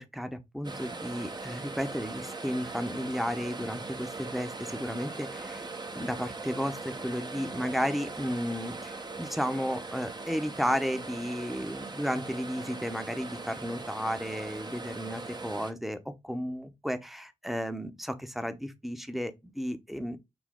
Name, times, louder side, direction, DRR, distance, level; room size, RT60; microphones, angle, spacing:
voice 1, 0.0-5.6 5.9-20.2, equal, ahead, 0.9 m, -33 dB
sound 1, 0.6-15.7, right 3 dB, 35° right, 0.9 m, -40 dB
6.2 x 2.2 x 3.7 m
cardioid pair, 45°, 13 cm